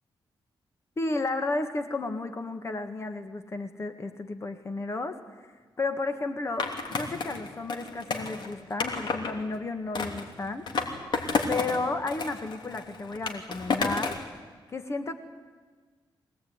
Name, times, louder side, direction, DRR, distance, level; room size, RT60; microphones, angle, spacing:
voice 1, 1.0-10.7 11.5-14.2 14.7-15.1, left 3 dB, 35° left, 8 dB, 1.7 m, -33 dB
Skateboard, 6.6-9.3 9.9-11.8 12.1-14.3, left 4 dB, 65° left, 3.1 m, -31 dB
24.0 x 18.0 x 9.6 m, 1.4 s
wide cardioid pair, 115°, 8 cm